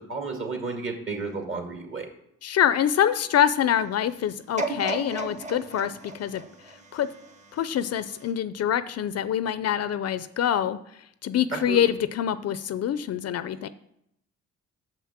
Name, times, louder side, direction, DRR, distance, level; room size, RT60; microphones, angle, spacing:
voice 1, 0.1-2.1 11.5-11.9, right 4 dB, 40° right, 2 dB, 2.3 m, -32 dB
voice 2, 2.4-6.4 6.9-7.1 7.5-10.8 11.2-13.7, left 10 dB, 55° left, 14 dB, 0.5 m, -25 dB
sound 1, 4.6-7.6 8.2-8.3, right 2 dB, 25° right, 1.2 m, -34 dB
6.9 x 5.8 x 7.3 m, 0.77 s
cardioid pair, 90°, 30 cm